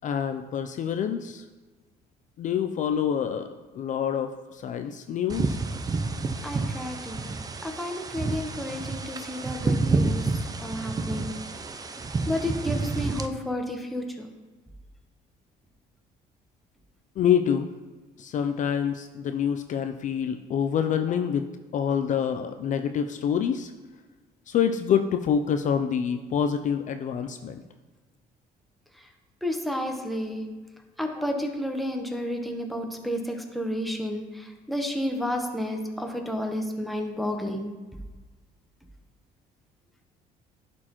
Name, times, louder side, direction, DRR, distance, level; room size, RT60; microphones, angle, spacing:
voice 1, 0.0-1.4 2.4-5.6 17.2-17.7 18.2-21.5 21.7-23.7 24.5-27.6, left 8 dB, 50° left, 7 dB, 0.4 m, -26 dB
sound 1, 5.3-13.3, right 3 dB, 20° right, 0.5 m, -29 dB
voice 2, 6.4-7.3 7.6-10.3 10.6-11.3 12.3-14.3 29.4-30.5 31.0-37.7, left 1 dB, ahead, 2 dB, 0.9 m, -31 dB
10.5 x 4.3 x 3.0 m, 1.3 s
cardioid pair, 110°, 17 cm